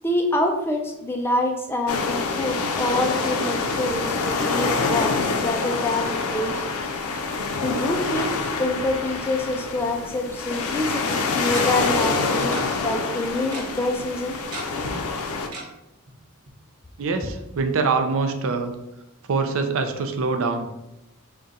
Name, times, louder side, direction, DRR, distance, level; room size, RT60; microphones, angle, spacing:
voice 1, 0.0-6.6 7.6-14.4, left 1 dB, 10° left, 3 dB, 0.3 m, -26 dB
sound 1, 1.9-15.5, left 4 dB, 75° left, 0.5 m, -26 dB
Tick-tock, 11.5-11.6 12.5-12.6 12.9-13.0 13.2-13.6 14.5-14.9 15.5-15.6 16.1-16.2 16.5-16.6, right 2 dB, 85° right, 0.9 m, -35 dB
voice 2, 17.0-18.7 19.3-20.7, right 4 dB, 65° right, 7 dB, 0.4 m, -24 dB
3.7 x 2.2 x 4.0 m, 0.90 s
head